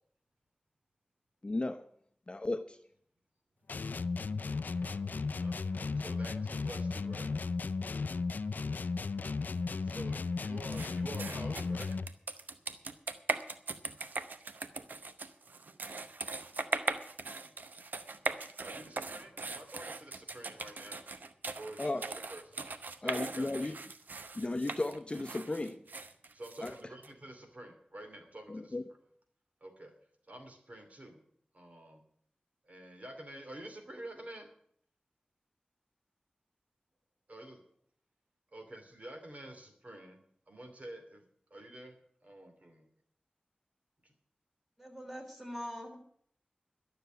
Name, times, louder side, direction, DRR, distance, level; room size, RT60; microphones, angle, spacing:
voice 1, 1.4-1.9 2.3-2.8 7.9-8.0 21.8-22.0 23.0-23.7 24.3-25.8 26.6-26.7 28.5-28.8, left 2 dB, 35° left, 9 dB, 0.7 m, -35 dB
sound 1, 3.7-12.2, left 4 dB, 75° left, 0.4 m, -35 dB
voice 2, 4.5-7.3 9.8-12.1 18.6-21.1 21.5-22.7 23.0-23.7 26.3-28.8 29.6-29.9 30.3-31.2 31.5-32.0 32.6-34.5 37.3-37.6 38.5-40.2 40.5-41.2 41.5-42.0 42.2-42.9 44.0-44.1, right 1 dB, 50° right, 4 dB, 2.7 m, -49 dB
sound 2, 10.7-27.1, right 3 dB, 90° right, 0.8 m, -40 dB
voice 3, 44.8-46.0, equal, 5° right, 2 dB, 3.6 m, -43 dB
12.0 x 6.8 x 9.2 m, 0.64 s
wide cardioid pair, 75°, 3 cm